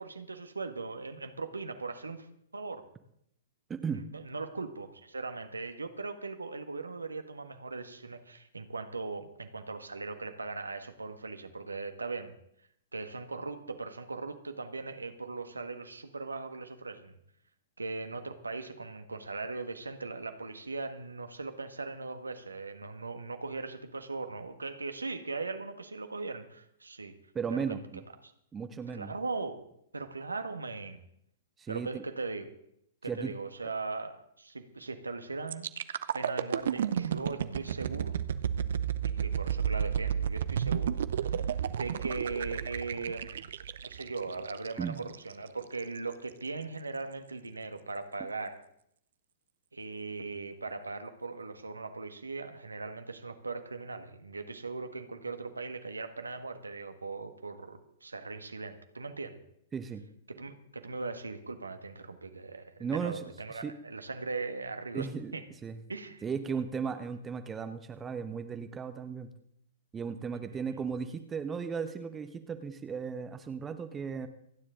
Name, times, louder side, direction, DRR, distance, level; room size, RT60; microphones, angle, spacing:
voice 1, 0.0-2.3 2.5-2.8 3.9-12.3 12.9-17.2 17.8-27.1 27.5-27.6 28.2-28.3 28.9-29.6 29.9-31.0 31.7-32.5 33.0-35.7 36.1-38.1 39.0-43.5 43.8-48.6 49.7-59.4 60.3-65.4 65.9-66.2, right 3 dB, 80° right, 7 dB, 1.5 m, -39 dB
voice 2, 3.7-4.0 27.3-28.0 28.5-29.1 31.6-32.0 33.1-33.3 44.8-45.0 59.7-60.0 62.8-63.7 64.9-65.3 65.6-65.8 66.2-69.3 69.9-74.3, right 6 dB, 15° right, 8 dB, 1.1 m, -36 dB
sound 1, 35.5-45.3 45.8-46.0, right 8 dB, 55° right, 0.7 m, -32 dB
28.0 x 10.0 x 3.8 m, 0.72 s
figure-of-eight pair, 110°, 0 cm